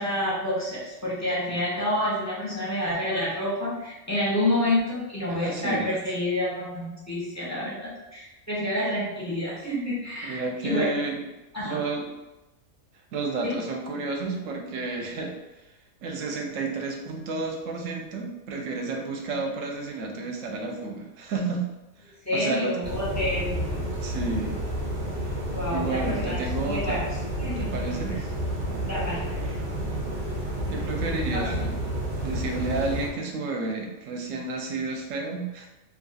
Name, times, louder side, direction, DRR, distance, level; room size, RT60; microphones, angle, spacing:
voice 1, 0.0-10.9 11.5-11.8 13.4-13.5 22.2-23.7 25.5-27.1 27.4-27.7 28.9-29.3 31.3-31.5, left 1 dB, 20° left, -7 dB, 0.5 m, -28 dB
voice 2, 5.3-5.9 10.2-11.2 11.6-12.1 13.1-15.3 16.0-21.7 22.3-22.8 24.0-24.5 25.7-27.0 27.6-28.3 30.7-31.8 32.2-35.7, right 3 dB, 70° right, 1 dB, 0.9 m, -31 dB
sound 1, 22.8-33.1, right 1 dB, 45° right, 1.0 m, -30 dB
2.9 x 2.4 x 2.6 m, 1.0 s
omnidirectional pair, 1.5 m